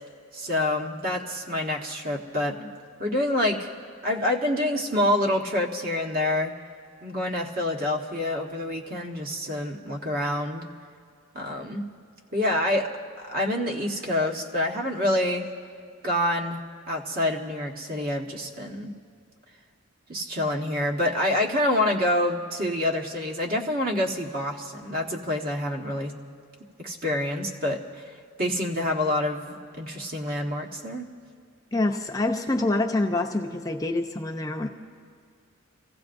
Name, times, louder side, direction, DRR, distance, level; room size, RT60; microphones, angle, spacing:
voice 1, 0.3-2.7 3.0-3.7 4.0-6.5 7.0-10.7 11.3-11.9 12.3-12.9 13.2-15.5 16.0-16.6 16.9-18.9 20.1-26.1 26.8-28.0 28.4-31.0, left 1 dB, 40° right, 1 dB, 1.2 m, -27 dB
voice 2, 31.7-34.7, left 2 dB, 15° left, 1 dB, 0.6 m, -26 dB
28.5 x 16.0 x 2.6 m, 2.3 s
head